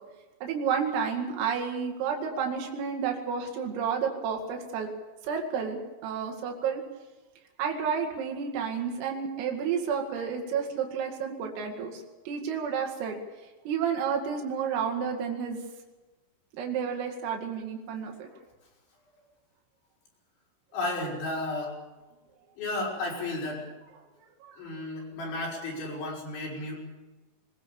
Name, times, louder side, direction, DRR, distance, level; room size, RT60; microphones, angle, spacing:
voice 1, 0.4-4.9 5.2-6.8 7.6-13.2 13.7-15.6 16.5-18.3 24.4-24.6, right 6 dB, 90° right, 2 dB, 4.8 m, -31 dB
voice 2, 20.7-21.8 22.6-23.7 24.6-26.8, left 2 dB, 65° left, -3 dB, 7.8 m, -33 dB
21.0 x 21.0 x 7.1 m, 1.2 s
omnidirectional pair, 5.8 m